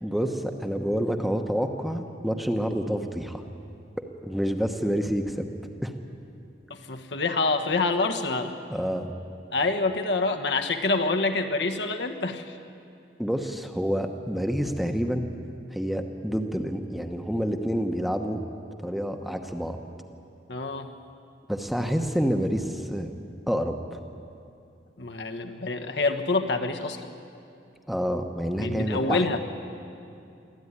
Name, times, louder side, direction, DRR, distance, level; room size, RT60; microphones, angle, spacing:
voice 1, 0.0-3.4 4.2-5.5 5.8-5.9 8.7-9.1 13.2-15.3 15.7-18.4 18.8-19.8 21.5-23.1 23.5-24.0 27.9-29.2, equal, ahead, 4 dB, 1.0 m, -28 dB
voice 2, 6.7-8.6 9.5-12.6 20.5-20.9 25.0-27.0 28.6-29.4, left 3 dB, 70° left, 5 dB, 1.3 m, -26 dB
24.0 x 14.5 x 9.8 m, 2.6 s
head